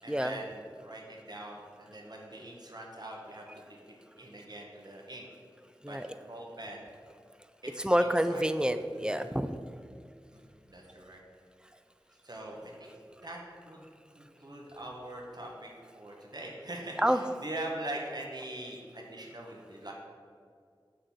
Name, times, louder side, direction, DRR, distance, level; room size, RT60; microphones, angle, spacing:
voice 1, 0.0-3.7 4.2-5.3 5.8-6.9 7.6-8.5 10.3-11.2 12.2-12.9 13.2-13.4 13.7-13.9 14.2-19.9, right 1 dB, 50° right, -1 dB, 1.2 m, -43 dB
voice 2, 7.8-9.6 17.0-17.2, equal, 10° right, 10 dB, 0.3 m, -27 dB
6.3 x 4.0 x 6.1 m, 2.2 s
wide cardioid pair, 50°, 9 cm